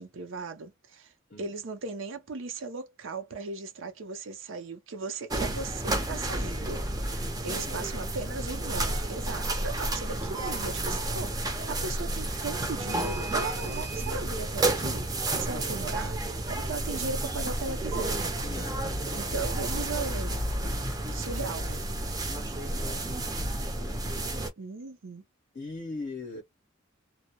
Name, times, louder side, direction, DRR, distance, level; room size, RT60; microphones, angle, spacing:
voice 1, 0.0-1.1 1.4-15.1 15.4-18.6 19.1-20.4 21.1-22.0 24.6-25.2, right 4 dB, 70° right, 0.6 m, -37 dB
sound 1, 5.3-24.5, right 2 dB, 20° right, 0.6 m, -31 dB
voice 2, 18.4-19.0 22.7-23.3 23.8-24.1 25.5-26.4, left 3 dB, 40° left, 0.6 m, -41 dB
2.2 x 2.0 x 2.7 m
head